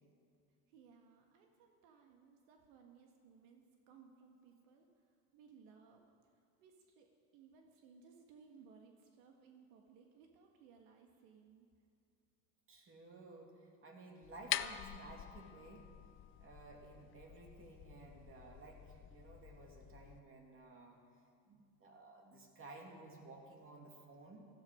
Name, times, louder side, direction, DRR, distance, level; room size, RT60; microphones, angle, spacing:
voice 1, 0.7-7.1 7.3-11.7, right 6 dB, 85° right, 2 dB, 1.8 m, -63 dB
voice 2, 12.7-15.9 16.4-21.0 21.5-24.4, right 2 dB, 30° right, 1 dB, 2.8 m, -55 dB
sound 1, 14.2-20.2, left 13 dB, 35° left, 0.4 m, -46 dB
16.0 x 14.5 x 5.2 m, 2.3 s
supercardioid pair, 130°, 40 cm